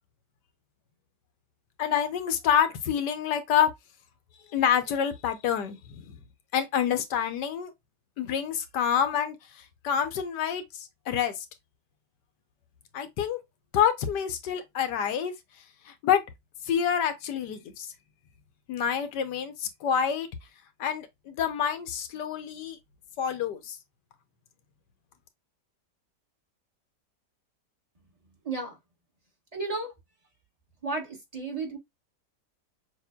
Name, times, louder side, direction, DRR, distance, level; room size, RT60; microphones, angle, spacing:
voice 1, 1.8-3.7 4.5-6.2 6.5-7.7 8.2-9.4 9.8-11.3 12.9-13.4 13.7-15.3 16.0-16.2 16.7-17.9 18.7-20.3 20.8-22.8 23.2-23.8, left 8 dB, 80° left, 1.4 m, -27 dB
voice 2, 28.4-28.8 29.5-29.9 30.8-31.8, right 3 dB, 25° right, 1.5 m, -33 dB
6.6 x 2.6 x 2.3 m
omnidirectional pair, 1.8 m